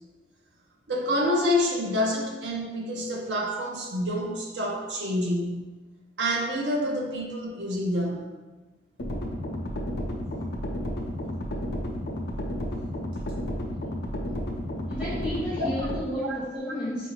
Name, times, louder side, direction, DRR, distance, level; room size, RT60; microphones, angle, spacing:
voice 1, 0.9-5.7 6.2-8.2, left 1 dB, 80° right, -1 dB, 0.7 m, -27 dB
sound 1, 9.0-16.0, equal, 65° left, 0.6 m, -32 dB
voice 2, 14.9-17.1, equal, 5° right, -10 dB, 0.7 m, -32 dB
4.7 x 2.6 x 3.0 m, 1.2 s
head